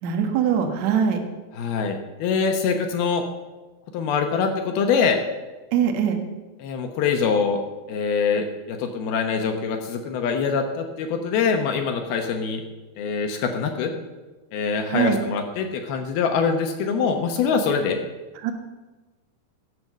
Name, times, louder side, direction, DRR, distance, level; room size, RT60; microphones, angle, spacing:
voice 1, 0.0-1.2 5.7-6.2 14.8-15.2 18.4-18.5, right 8 dB, 60° right, 4 dB, 2.0 m, -22 dB
voice 2, 1.6-3.2 3.9-5.2 6.6-7.6 7.9-12.6 13.0-13.9 14.5-18.0, left 5 dB, 70° left, 5 dB, 2.6 m, -24 dB
17.0 x 8.0 x 7.3 m, 1.2 s
omnidirectional pair, 5.2 m